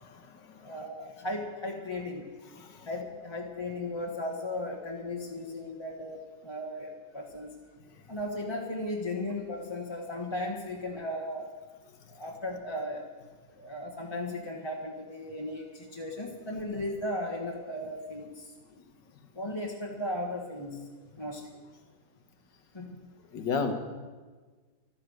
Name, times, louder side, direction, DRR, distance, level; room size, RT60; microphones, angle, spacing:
voice 1, 0.0-0.7 2.5-2.9 23.3-23.7, left 5 dB, 80° left, 7 dB, 2.1 m, -34 dB
voice 2, 0.6-2.3 2.9-7.5 8.1-11.5 12.1-13.1 13.6-18.5 19.3-20.8 21.2-21.6 22.7-23.0, left 1 dB, 15° left, -2 dB, 1.4 m, -36 dB
15.0 x 12.5 x 6.5 m, 1.4 s
omnidirectional pair, 2.0 m